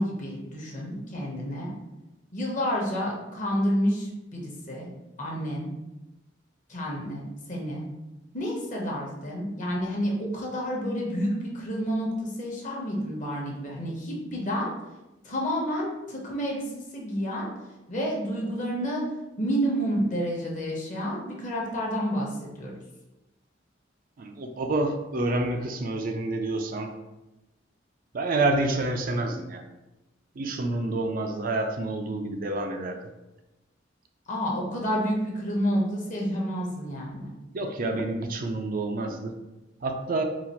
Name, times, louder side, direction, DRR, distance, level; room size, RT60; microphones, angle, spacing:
voice 1, 0.0-1.7 2.3-4.9 5.2-5.7 6.7-7.8 8.3-14.7 15.2-16.6 16.9-17.5 17.9-19.0 19.4-22.7 34.3-37.3, equal, 45° left, -2 dB, 1.0 m, -29 dB
voice 2, 24.2-26.9 28.1-29.6 30.4-33.0 37.5-39.3 39.8-40.2, right 2 dB, 50° right, 4 dB, 0.4 m, -28 dB
4.0 x 2.4 x 4.2 m, 1.0 s
head